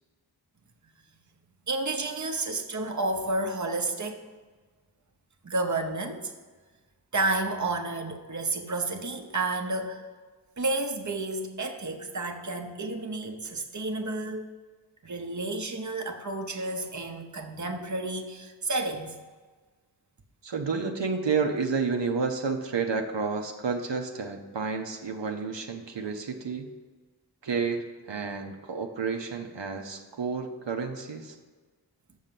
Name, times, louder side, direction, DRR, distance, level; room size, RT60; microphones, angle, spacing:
voice 1, 1.7-4.2 5.4-6.3 7.1-10.0 10.6-14.5 15.0-19.1, right 2 dB, 45° right, 4 dB, 0.9 m, -31 dB
voice 2, 20.4-26.7 27.4-31.4, right 5 dB, 85° right, 4 dB, 0.8 m, -30 dB
6.7 x 6.4 x 7.5 m, 1.4 s
wide cardioid pair, 65°, 42 cm